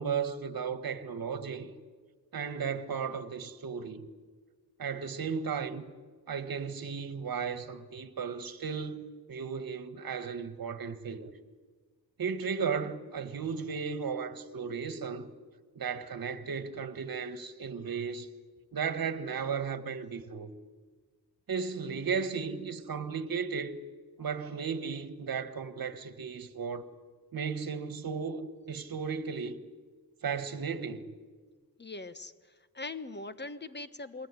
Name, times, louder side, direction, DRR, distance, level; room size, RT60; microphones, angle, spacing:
voice 1, 0.0-1.7 2.3-4.1 4.8-5.8 6.3-11.3 12.2-15.3 15.8-18.3 18.7-20.5 21.5-23.8 24.2-26.8 27.3-29.6 30.2-31.1, right 6 dB, 60° right, 1.7 m, -35 dB
voice 2, 31.8-32.3 32.7-34.3, left 3 dB, 25° left, 1.3 m, -41 dB
28.5 x 21.0 x 9.8 m
wide cardioid pair, 110°, 38 cm